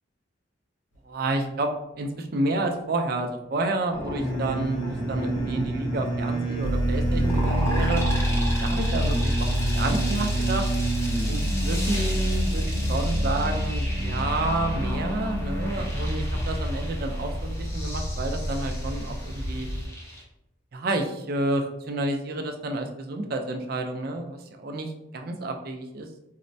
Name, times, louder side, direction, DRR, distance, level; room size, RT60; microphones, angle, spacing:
voice 1, 1.1-1.7 2.0-8.0 8.6-10.7 11.3-19.7 20.7-26.1, right 2 dB, 50° right, 4 dB, 0.4 m, -30 dB
sound 1, 3.9-20.2, equal, 15° left, 0.6 m, -36 dB
sound 2, 4.2-16.1, right 2 dB, 85° left, 0.8 m, -31 dB
sound 3, 6.6-19.9, equal, 30° right, 1.0 m, -28 dB
4.2 x 2.1 x 2.6 m, 0.87 s
head